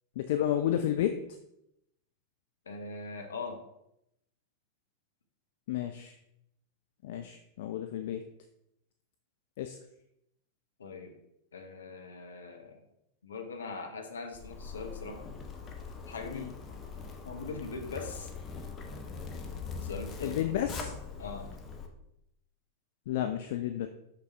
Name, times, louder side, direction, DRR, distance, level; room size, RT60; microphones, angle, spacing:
voice 1, 0.2-1.1 5.7-6.1 7.0-8.2 9.6-9.8 16.3-16.5 20.2-20.9 23.1-23.9, left 11 dB, 55° left, 7 dB, 0.4 m, -31 dB
voice 2, 2.6-3.6 10.8-11.2 11.5-12.8 13.2-15.3 16.1-16.5 17.2-18.3 19.8-20.4 21.2-21.5, left 4 dB, 70° left, 4 dB, 1.0 m, -41 dB
Zipper (clothing), 14.3-21.9, left 5 dB, 25° left, 0.9 m, -42 dB
6.0 x 5.8 x 3.4 m, 0.81 s
figure-of-eight pair, 90°, 0 cm